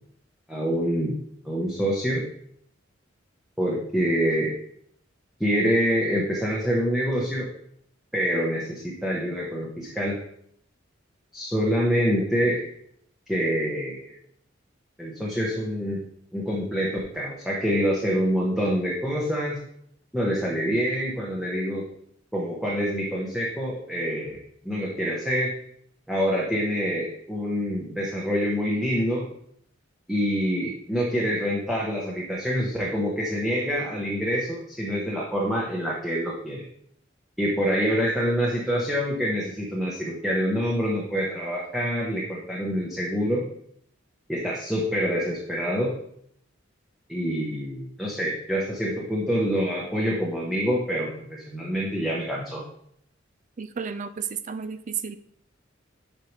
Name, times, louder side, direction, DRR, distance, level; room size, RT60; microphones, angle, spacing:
voice 1, 0.5-1.2 1.4-2.2 3.6-4.5 5.4-7.5 8.1-10.2 11.3-12.6 13.3-14.1 15.0-16.0 16.3-19.6 20.1-21.8 22.3-24.4 24.6-25.5 26.1-29.3 30.1-36.6 37.4-43.4 44.3-45.9 47.1-52.6, equal, ahead, -5 dB, 1.0 m, -26 dB
voice 2, 53.6-55.2, right 6 dB, 40° right, 11 dB, 0.4 m, -32 dB
7.5 x 5.4 x 3.3 m, 0.69 s
head